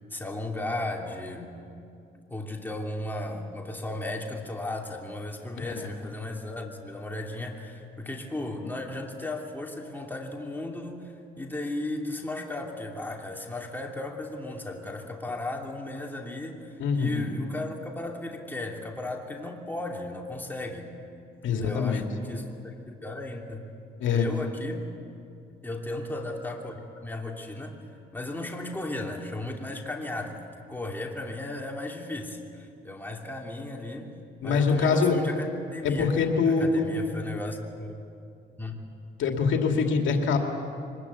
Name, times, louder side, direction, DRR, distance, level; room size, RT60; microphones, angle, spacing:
voice 1, 0.1-1.6 2.3-20.9 21.5-23.6 24.1-24.9 25.6-27.9 28.1-34.2 34.4-38.0 38.6-38.8, left 2 dB, 10° left, 1 dB, 2.9 m, -35 dB
voice 2, 16.8-17.3 21.4-22.0 24.0-24.3 34.4-35.2 35.8-36.9 39.2-40.4, left 5 dB, 75° left, 3 dB, 2.4 m, -24 dB
23.5 x 20.5 x 8.3 m, 2.5 s
cardioid pair, 90°, 20 cm